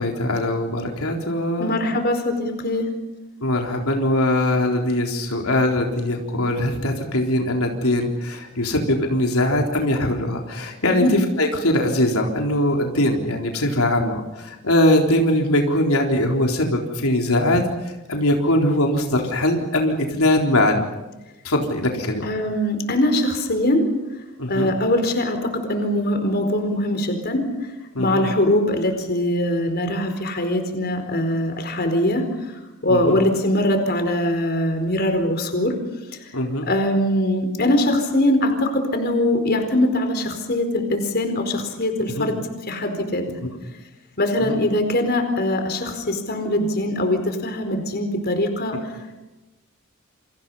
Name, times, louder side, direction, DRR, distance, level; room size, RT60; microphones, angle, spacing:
voice 1, 0.0-1.7 3.4-17.6 18.1-20.8 21.4-22.3 24.4-24.7 27.9-28.3 32.9-33.2 36.3-36.7 42.2-42.3 44.4-44.5, left 1 dB, 85° left, 1 dB, 3.9 m, -21 dB
voice 2, 1.6-2.9 10.8-11.1 22.2-23.9 24.5-27.4 28.0-35.8 36.1-36.2 36.6-42.4 42.7-43.2 44.2-48.8, left 1 dB, 50° left, 6 dB, 4.5 m, -22 dB
29.5 x 27.0 x 5.6 m, 1.0 s
head